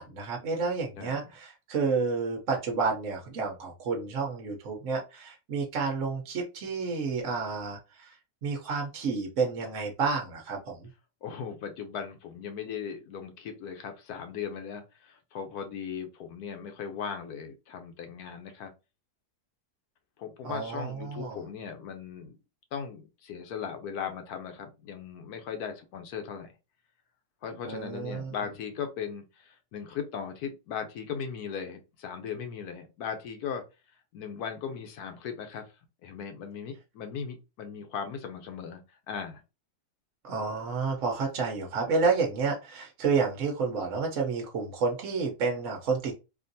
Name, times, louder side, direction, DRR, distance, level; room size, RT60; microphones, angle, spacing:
voice 1, 0.0-8.2 8.4-10.9 20.4-21.4 27.6-28.3 40.2-46.1, right 4 dB, 60° right, 1 dB, 1.1 m, -30 dB
voice 2, 11.2-18.7 20.2-22.4 22.7-26.5 27.4-33.6 34.1-35.7 36.0-38.8 39.1-39.4, left 7 dB, 75° left, 6 dB, 1.2 m, -38 dB
3.6 x 2.5 x 2.6 m, 0.28 s
omnidirectional pair, 1.7 m